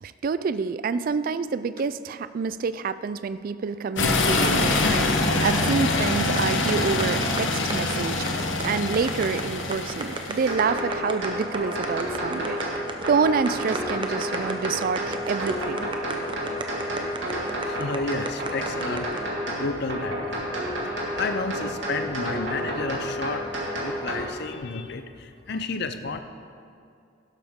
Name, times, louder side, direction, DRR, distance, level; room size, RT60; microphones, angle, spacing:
voice 1, 0.0-5.1 5.4-12.6 13.1-15.9, right 5 dB, 50° right, 14 dB, 0.3 m, -27 dB
sound 1, 4.0-10.5, left 2 dB, 80° left, 1.0 m, -24 dB
sound 2, 6.4-19.2, right 3 dB, 25° right, 0.8 m, -34 dB
sound 3, 10.5-24.2, equal, 75° right, 2.5 m, -30 dB
voice 2, 17.6-20.5 20.8-26.2, left 4 dB, 60° left, 9 dB, 0.6 m, -32 dB
11.5 x 11.5 x 3.7 m, 2.4 s
head